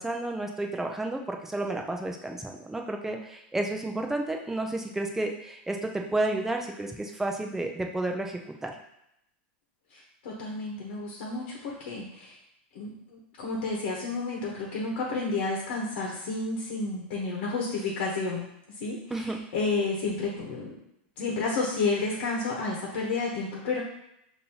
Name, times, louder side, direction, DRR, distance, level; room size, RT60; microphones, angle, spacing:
voice 1, 0.0-8.7 19.1-19.4, right 2 dB, 5° right, 2 dB, 0.5 m, -31 dB
voice 2, 9.9-12.4 12.7-20.8 21.2-23.8, left 3 dB, 70° left, -3 dB, 1.0 m, -31 dB
5.3 x 2.7 x 2.9 m, 0.80 s
supercardioid pair, 140°, 6 cm